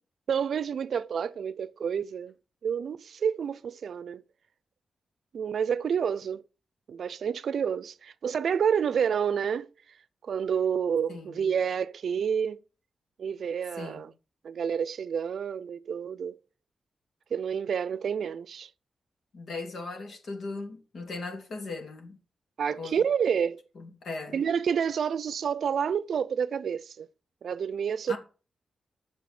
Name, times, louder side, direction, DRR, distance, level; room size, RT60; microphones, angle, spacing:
voice 1, 0.3-2.3 2.6-4.2 5.3-6.4 6.9-9.7 10.2-12.6 13.2-14.1 14.4-16.4 17.3-18.7 22.6-23.6 24.3-27.1 27.4-28.2, right 7 dB, 75° right, 0.5 m, -29 dB
voice 2, 11.1-11.4 13.8-14.1 19.3-22.2 22.7-23.0 23.7-24.4 28.1-28.2, left 3 dB, 70° left, 2.9 m, -38 dB
8.4 x 6.8 x 7.7 m
cardioid pair, 85°, 0 cm